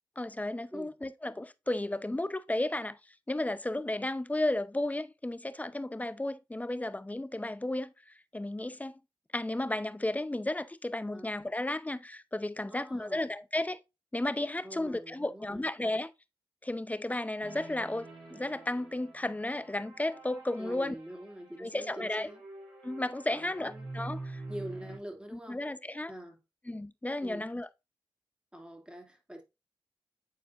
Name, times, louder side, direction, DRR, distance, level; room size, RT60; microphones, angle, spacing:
voice 1, 0.2-3.0 3.3-9.0 9.3-13.8 14.1-16.1 16.6-21.0 21.6-22.3 22.8-24.4 25.3-26.1 26.7-27.7, left 1 dB, 15° left, 0.6 m, -33 dB
voice 2, 12.7-13.3 14.6-15.7 20.6-22.4 23.3-23.9 24.5-25.6 26.1-26.4 27.2-27.5 28.5-29.4, right 1 dB, 10° right, 2.4 m, -45 dB
sound 1, 17.4-25.0, right 2 dB, 80° right, 2.9 m, -46 dB
9.5 x 4.3 x 2.5 m
cardioid pair, 40°, 9 cm